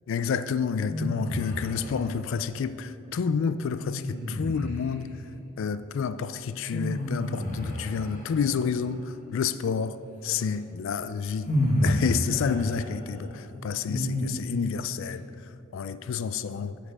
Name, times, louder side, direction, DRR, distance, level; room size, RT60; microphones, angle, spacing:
voice 1, 0.1-5.1 5.6-10.0 10.2-11.5 11.8-15.2 15.7-16.8, left 6 dB, 60° left, 0.3 m, -29 dB
sound 1, 0.9-2.0 3.8-5.0 6.7-8.7 10.5-10.6 11.5-14.7, left 1 dB, 35° left, 1.2 m, -30 dB
7.3 x 6.5 x 5.1 m
head